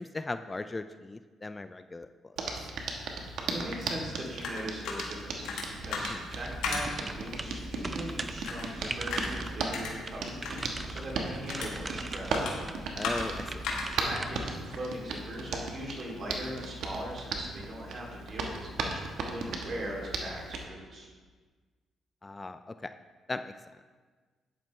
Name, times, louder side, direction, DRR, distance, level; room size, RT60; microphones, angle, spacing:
voice 1, 0.0-2.1 2.4-2.5 6.1-6.2 12.9-13.6 22.2-22.9 23.3-23.5, left 3 dB, 20° left, 10 dB, 0.3 m, -38 dB
Hands, 2.4-20.6, right 3 dB, 75° right, 1.2 m, -37 dB
voice 2, 3.5-12.9 13.9-21.1, right 1 dB, 50° right, -2 dB, 2.8 m, -40 dB
sound 1, 3.8-15.5, left 4 dB, 90° left, 1.7 m, -39 dB
sound 2, 6.3-14.5, right 2 dB, 25° right, 0.6 m, -41 dB
10.5 x 8.8 x 3.2 m, 1.4 s
cardioid pair, 90°, 0 cm